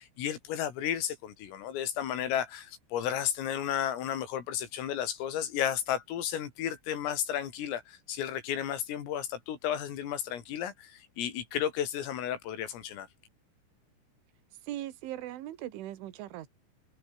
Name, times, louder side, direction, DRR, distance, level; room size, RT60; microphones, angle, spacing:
voice 1, 0.0-13.1, left 10 dB, 85° left, 5.7 m, -33 dB
voice 2, 14.6-16.5, right 13 dB, 75° right, 4.2 m, -39 dB
omnidirectional pair, 5.8 m